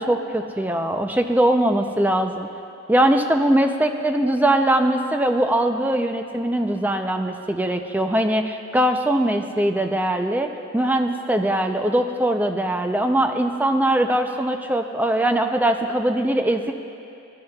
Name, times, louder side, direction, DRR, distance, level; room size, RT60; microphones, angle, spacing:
voice 1, 0.0-2.5 2.9-16.7, right 1 dB, 10° right, 6 dB, 0.4 m, -21 dB
19.0 x 11.0 x 2.3 m, 2.6 s
head